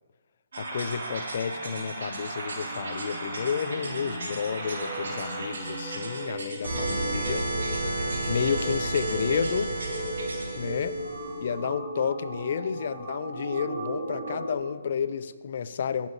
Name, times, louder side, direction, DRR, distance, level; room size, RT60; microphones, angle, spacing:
sound 1, 0.5-14.6, right 2 dB, 65° right, 2.5 m, -33 dB
voice 1, 0.6-7.5 8.3-9.7 10.5-11.0 11.4-16.1, left 7 dB, 55° left, 14 dB, 0.5 m, -31 dB
sound 2, 4.6-10.6, right 3 dB, 15° right, 0.9 m, -38 dB
19.0 x 7.2 x 2.8 m, 1.5 s
figure-of-eight pair, 135°, 0 cm